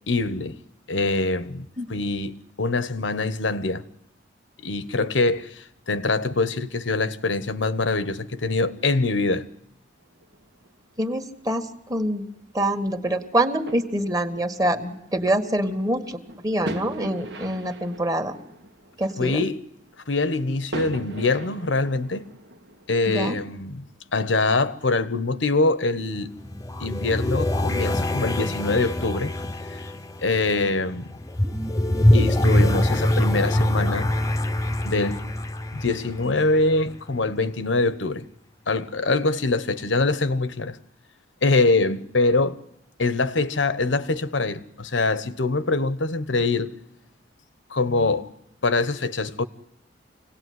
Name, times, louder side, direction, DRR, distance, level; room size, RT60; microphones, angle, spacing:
voice 1, 0.1-0.6 0.9-3.8 4.6-9.5 19.2-19.6 20.1-22.3 22.9-23.8 24.1-26.4 26.8-29.3 30.2-31.1 32.1-34.1 34.8-35.2 35.7-38.3 38.7-40.8 41.4-42.6 43.0-46.8 47.7-48.3 48.6-49.4, left 3 dB, 85° left, 1.1 m, -24 dB
sound 1, 10.0-24.6, right 1 dB, 65° right, 1.7 m, -42 dB
voice 2, 11.0-12.2 12.5-18.4 19.0-19.4 23.1-23.4, right 1 dB, 20° right, 1.8 m, -25 dB
sound 2, 26.1-36.9, left 1 dB, 20° left, 0.8 m, -24 dB
26.0 x 18.0 x 9.6 m
head